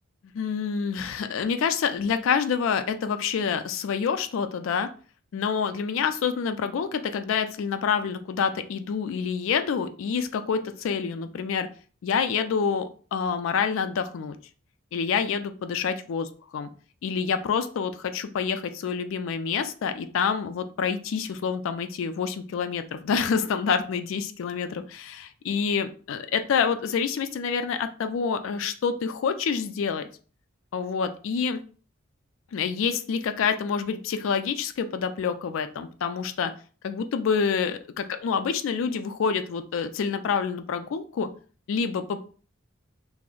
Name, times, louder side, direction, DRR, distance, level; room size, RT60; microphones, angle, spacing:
voice 1, 0.3-4.9 5.3-11.7 12.0-14.4 14.9-16.2 16.5-16.7 17.0-30.1 30.7-31.6 32.5-36.5 36.8-41.3 41.7-42.2, left 6 dB, 75° left, 9 dB, 0.3 m, -27 dB
2.4 x 2.0 x 3.7 m, 0.39 s
head